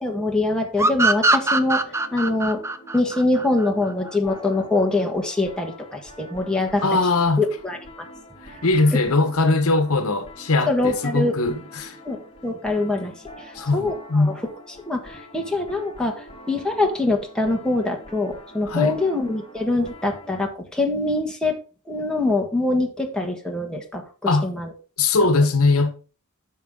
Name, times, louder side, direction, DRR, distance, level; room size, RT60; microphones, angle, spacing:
voice 1, 0.0-2.6 2.9-6.8 7.4-7.8 8.9-9.0 10.7-11.3 12.0-14.3 14.9-21.6 21.9-24.0 24.4-24.7, left 2 dB, 5° left, 1.6 m, -24 dB
sound 1, 0.8-4.2, right 2 dB, 10° right, 0.6 m, -21 dB
Electronic loop guitar., 1.2-20.4, left 1 dB, 25° left, 2.2 m, -45 dB
voice 2, 6.8-7.4 8.4-12.0 13.5-14.4 18.7-19.0 24.3-24.5 25.0-25.9, left 3 dB, 70° left, 1.1 m, -20 dB
10.0 x 6.4 x 3.7 m
head